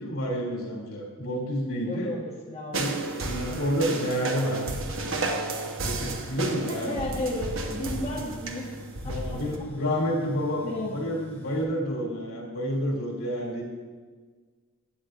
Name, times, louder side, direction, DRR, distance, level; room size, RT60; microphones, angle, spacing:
voice 1, 0.0-2.1 2.7-4.7 5.2-7.1 9.0-13.6, equal, 80° left, -2 dB, 2.7 m, -30 dB
voice 2, 1.9-3.0 6.7-8.7 9.0-9.4 10.6-10.9, left 1 dB, 30° left, -4 dB, 1.3 m, -33 dB
sound 1, 2.7-9.6, right 2 dB, 60° right, 0.9 m, -32 dB
Tools, 4.3-11.6, left 1 dB, 10° left, 1.0 m, -47 dB
15.0 x 8.8 x 2.5 m, 1.5 s
head